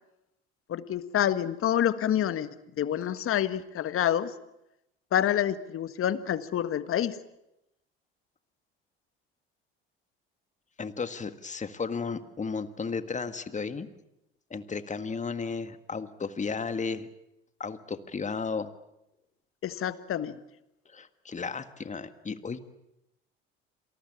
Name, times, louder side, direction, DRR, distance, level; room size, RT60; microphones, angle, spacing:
voice 1, 0.7-4.3 5.1-7.2 19.6-20.4, left 10 dB, 45° left, 14 dB, 1.5 m, -28 dB
voice 2, 10.8-13.9 14.5-17.1 17.6-18.7 20.9-22.6, left 5 dB, 25° left, 11 dB, 1.8 m, -34 dB
27.0 x 19.0 x 8.7 m, 0.87 s
hypercardioid pair, 60°, 31 cm